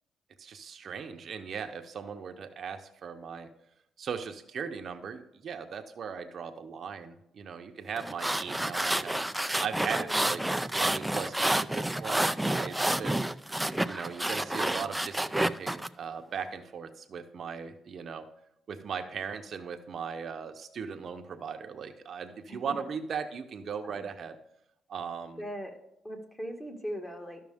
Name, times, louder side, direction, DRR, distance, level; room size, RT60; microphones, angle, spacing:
voice 1, 0.4-3.5 4.0-9.2 9.6-10.4 10.7-13.2 13.8-18.3 18.7-24.4 24.9-25.4, right 6 dB, 55° right, 6 dB, 0.7 m, -38 dB
sound 1, 8.0-15.9, right 1 dB, 5° right, 0.4 m, -29 dB
voice 2, 10.0-10.3 22.5-22.8 23.8-24.1 25.4-25.8 26.0-27.4, equal, 15° left, 3 dB, 1.8 m, -39 dB
12.5 x 6.0 x 3.5 m, 0.81 s
cardioid pair, 90°, 0 cm